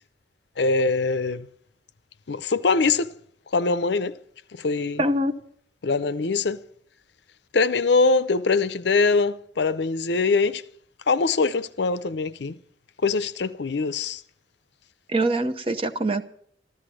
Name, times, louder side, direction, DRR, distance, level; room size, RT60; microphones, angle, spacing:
voice 1, 0.6-1.5 2.3-3.1 3.5-4.2 4.5-5.0 5.8-6.6 7.5-10.6 11.1-12.6 13.0-14.2, left 4 dB, 70° left, 0.6 m, -23 dB
voice 2, 5.0-5.3 15.1-16.2, right 1 dB, 30° right, 0.8 m, -23 dB
14.0 x 13.5 x 6.3 m
head